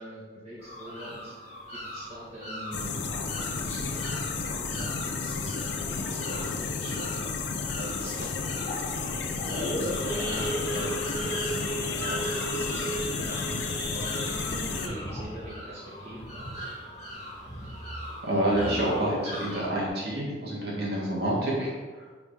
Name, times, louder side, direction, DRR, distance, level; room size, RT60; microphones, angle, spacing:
voice 1, 0.0-1.3 1.7-7.2 7.8-8.2 9.7-14.1 14.7-16.7, equal, 40° right, -8 dB, 1.5 m, -43 dB
sound 1, 0.6-19.7, equal, 40° left, 2.4 m, -41 dB
sound 2, 2.7-14.9, left 4 dB, 85° left, 0.7 m, -32 dB
Idling / Accelerating revving vroom / Sawing, 6.0-17.1 17.5-17.7 17.9-18.0 18.5-18.8 19.2-19.3 19.5-19.9, equal, 20° left, 2.1 m, -36 dB
voice 2, 18.2-22.0, right 1 dB, 65° right, -5 dB, 2.5 m, -28 dB
9.8 x 4.9 x 3.5 m, 1.4 s
head